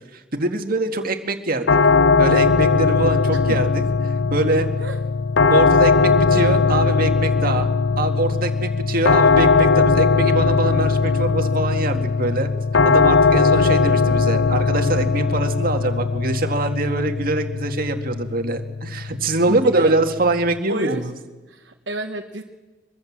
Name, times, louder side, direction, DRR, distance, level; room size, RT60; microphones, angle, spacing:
voice 1, 0.1-1.8 2.2-4.7 5.5-7.7 8.0-12.5 12.8-21.1, right 2 dB, 50° right, 6 dB, 1.9 m, -23 dB
sound 1, 1.7-20.6, left 4 dB, 80° left, 0.7 m, -19 dB
voice 2, 19.5-19.9 20.7-21.0 21.5-22.4, right 2 dB, 70° right, 2 dB, 1.3 m, -29 dB
23.5 x 22.5 x 7.4 m, 1.2 s
head